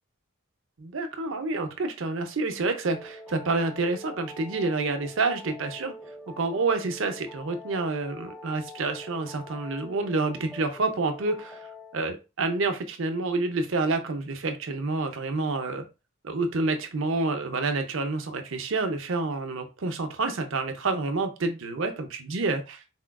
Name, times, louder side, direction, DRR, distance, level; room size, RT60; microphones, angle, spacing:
voice 1, 0.8-5.9 6.4-11.7 11.9-15.8 16.2-22.8, right 3 dB, 65° right, 7 dB, 0.6 m, -28 dB
sound 1, 2.9-12.1, left 1 dB, 5° left, 0.3 m, -44 dB
4.2 x 2.3 x 2.2 m, 0.28 s
head